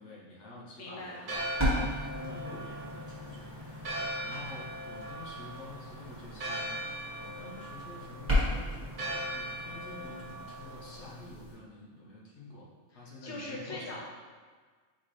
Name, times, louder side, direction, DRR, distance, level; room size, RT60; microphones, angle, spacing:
voice 1, 0.0-6.8 7.2-14.0, left 2 dB, 75° left, -4 dB, 1.2 m, -48 dB
voice 2, 0.8-1.2 12.9-14.0, left 2 dB, 20° left, -4 dB, 0.6 m, -41 dB
Church bell, 1.0-11.2, right 1 dB, 45° right, 1.1 m, -40 dB
sound 1, 1.3-11.5, left 1 dB, 10° right, 1.3 m, -36 dB
4.3 x 3.7 x 3.1 m, 1.5 s
omnidirectional pair, 1.2 m